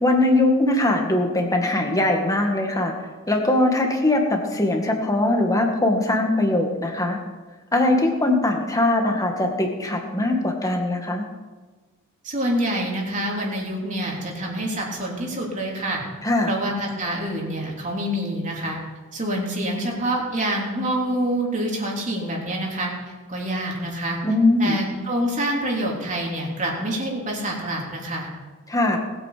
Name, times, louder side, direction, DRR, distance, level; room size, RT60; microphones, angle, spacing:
voice 1, 0.0-2.9 3.3-7.2 7.7-11.2 16.2-16.6 24.2-24.8 28.7-29.0, left 2 dB, 15° left, 2 dB, 1.9 m, -21 dB
voice 2, 12.2-16.0 16.5-18.8 19.1-22.9 23.3-24.2 24.6-28.3, right 1 dB, 35° right, -2 dB, 3.4 m, -26 dB
20.0 x 8.7 x 5.1 m, 1.3 s
head